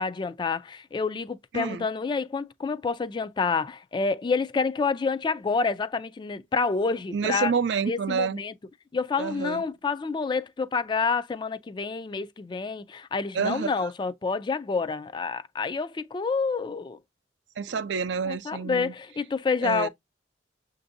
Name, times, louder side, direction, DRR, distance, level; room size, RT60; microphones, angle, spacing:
voice 1, 0.0-7.5 7.9-8.5 8.9-17.0 18.3-19.9, left 4 dB, 25° left, 0.3 m, -28 dB
voice 2, 1.5-1.9 7.1-8.4 9.2-9.6 13.3-13.7 17.6-18.9 19.6-19.9, right 6 dB, 85° right, 0.4 m, -28 dB
6.9 x 2.6 x 2.6 m
head